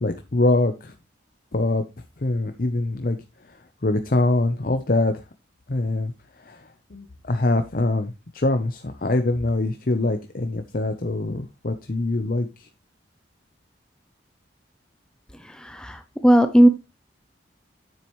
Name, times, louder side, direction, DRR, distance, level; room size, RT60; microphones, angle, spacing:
voice 1, 0.0-0.9 1.5-1.8 2.2-3.2 3.4-5.2 5.7-12.7, left 2 dB, 50° left, 8 dB, 0.7 m, -24 dB
voice 2, 15.6-16.7, right 1 dB, 5° left, 9 dB, 0.5 m, -16 dB
9.3 x 7.5 x 3.1 m, 0.25 s
head